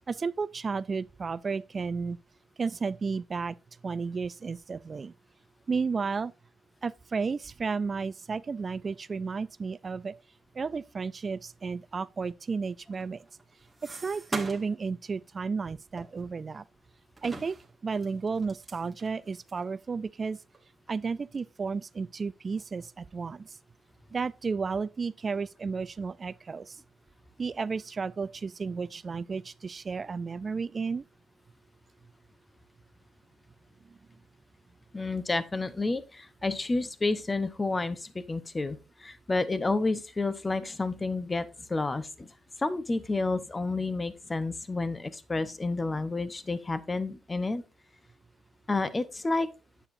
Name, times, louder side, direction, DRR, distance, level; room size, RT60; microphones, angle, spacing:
voice 1, 0.1-2.2 2.6-3.6 3.8-5.1 5.7-6.3 6.8-10.1 10.5-13.2 13.9-16.6 17.2-17.6 17.8-20.4 20.9-23.6 24.1-26.8 27.4-31.0, right 5 dB, 35° right, 0.3 m, -33 dB
sound 1, 12.9-14.8 15.2-15.4 16.0-16.8 17.2-19.6 20.2-20.3 20.5-20.6 21.3-21.6 22.0-22.7 23.0-23.8, right 3 dB, 10° right, 1.8 m, -43 dB
voice 2, 34.9-47.6 48.7-49.5, left 3 dB, 20° left, 0.8 m, -30 dB
9.8 x 8.4 x 2.6 m
cardioid pair, 120°, 0 cm